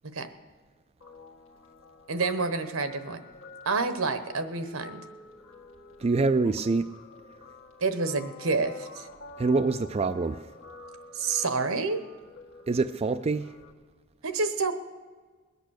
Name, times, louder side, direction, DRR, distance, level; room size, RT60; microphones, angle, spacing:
Guitar, 1.0-13.7, left 3 dB, 70° left, 1.6 m, -48 dB
voice 1, 2.1-3.2 3.6-5.0 7.8-9.1 11.1-12.0 14.2-14.7, right 4 dB, 80° right, 1.1 m, -28 dB
voice 2, 6.0-6.9 9.4-10.5 12.7-13.5, right 3 dB, 30° right, 0.3 m, -25 dB
21.0 x 8.2 x 6.4 m
head